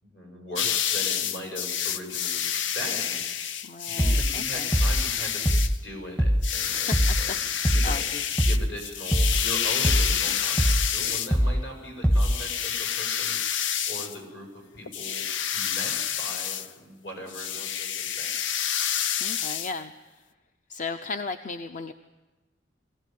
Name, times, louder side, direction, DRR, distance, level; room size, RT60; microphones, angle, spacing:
voice 1, 0.0-2.4 2.7-3.7 3.9-7.3 7.6-8.1 8.5-14.5 14.7-15.2 15.5-18.3, equal, 70° left, 1 dB, 7.5 m, -40 dB
sound 1, 0.6-5.8 6.4-11.4 12.2-14.2 14.9-16.7 17.3-19.7, left 9 dB, 90° left, 0.7 m, -28 dB
voice 2, 3.6-4.7 6.7-7.2 7.5-8.3 10.2-10.4 19.2-19.9 20.7-21.9, left 4 dB, 45° left, 9 dB, 0.7 m, -36 dB
sound 2, 4.0-4.4 4.7-5.1 5.4-5.8 6.2-6.6 6.9-7.3 7.6-8.0 8.4-8.8 9.1-9.5 9.8-10.2 10.6-10.9 11.3-11.7 12.0-12.4, equal, 5° left, 0.7 m, -23 dB
23.5 x 16.5 x 9.4 m, 1.2 s
head